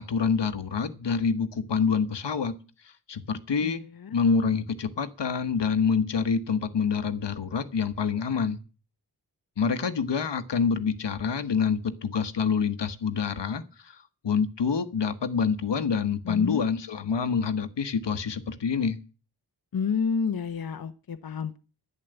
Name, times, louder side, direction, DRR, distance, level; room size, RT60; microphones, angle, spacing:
voice 1, 0.0-2.6 3.1-3.8 4.1-8.6 9.6-13.9 14.2-19.0, left 6 dB, 80° left, 11 dB, 1.3 m, -26 dB
voice 2, 3.6-4.1 16.3-16.6 19.7-21.6, left 6 dB, 55° left, 9 dB, 0.9 m, -30 dB
11.0 x 10.5 x 8.0 m, 0.36 s
wide cardioid pair, 115°, 42 cm